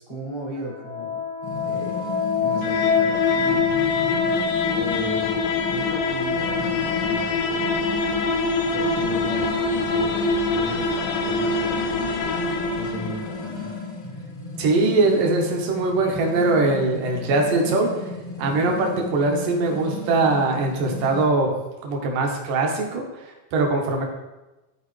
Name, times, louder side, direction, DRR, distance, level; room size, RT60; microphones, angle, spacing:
voice 1, 0.1-1.2 1.6-3.8 4.7-7.8 8.7-10.2 10.5-12.1 12.8-13.7, equal, 30° right, -4 dB, 0.4 m, -36 dB
sound 1, 0.7-13.6, left 4 dB, 85° left, 2.5 m, -24 dB
sound 2, 1.4-21.3, left 3 dB, 35° left, 0.4 m, -34 dB
voice 2, 14.6-18.0 18.4-21.6 21.8-24.0, right 3 dB, 70° right, 1 dB, 2.8 m, -22 dB
13.5 x 4.7 x 3.3 m, 1.0 s
omnidirectional pair, 4.1 m